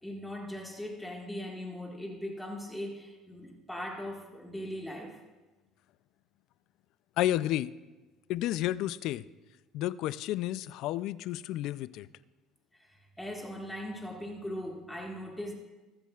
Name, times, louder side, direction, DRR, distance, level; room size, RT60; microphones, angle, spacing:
voice 1, 0.0-5.2 12.7-15.5, left 1 dB, 5° left, 0 dB, 1.7 m, -40 dB
voice 2, 7.2-7.7 8.3-9.2 9.7-12.1, left 14 dB, 65° left, 17 dB, 0.3 m, -31 dB
21.0 x 7.4 x 2.4 m, 1.2 s
supercardioid pair, 90°, 0 cm